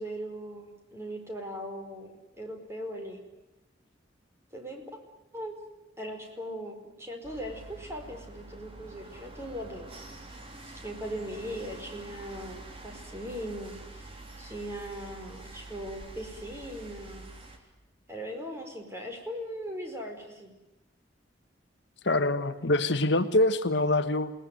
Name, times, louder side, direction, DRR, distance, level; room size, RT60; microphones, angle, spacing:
voice 1, 0.0-2.1 2.4-3.2 4.5-4.8 5.3-5.5 6.0-9.9 10.8-17.3 18.1-20.5, equal, 15° right, 2 dB, 4.8 m, -39 dB
sound 1, 7.2-17.6, right 2 dB, 30° right, 3.6 m, -46 dB
voice 2, 22.0-24.3, left 2 dB, 65° left, 9 dB, 1.2 m, -25 dB
28.5 x 19.5 x 9.4 m, 0.98 s
head